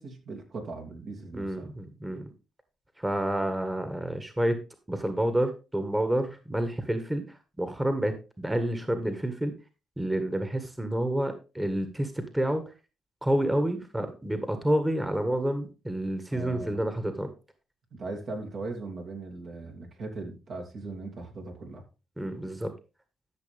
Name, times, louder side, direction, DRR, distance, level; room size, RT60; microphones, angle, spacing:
voice 1, 0.0-1.7 16.3-16.8 17.9-21.8, right 3 dB, 60° right, 3 dB, 2.8 m, -39 dB
voice 2, 1.3-2.3 3.0-4.6 4.9-7.2 7.6-9.5 10.0-12.7 13.2-17.3 22.2-22.7, right 1 dB, 10° right, 8 dB, 1.6 m, -29 dB
13.0 x 6.0 x 3.5 m, 0.30 s
supercardioid pair, 65°, 0 cm